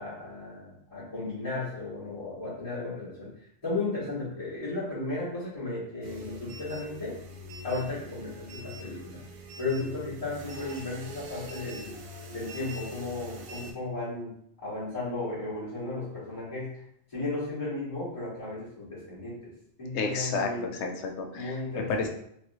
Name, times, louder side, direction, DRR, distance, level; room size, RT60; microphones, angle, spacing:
voice 1, 0.0-3.3 3.6-7.1 7.6-9.2 9.6-12.0 12.3-14.3 14.6-16.7 17.1-19.4 19.8-20.7 21.3-22.0, left 2 dB, 30° left, -12 dB, 1.5 m, -34 dB
sound 1, 6.0-13.7, equal, 70° right, 0.9 m, -43 dB
voice 2, 19.9-22.1, left 4 dB, 75° left, 3 dB, 0.8 m, -31 dB
3.0 x 2.9 x 2.7 m, 0.71 s
omnidirectional pair, 1.2 m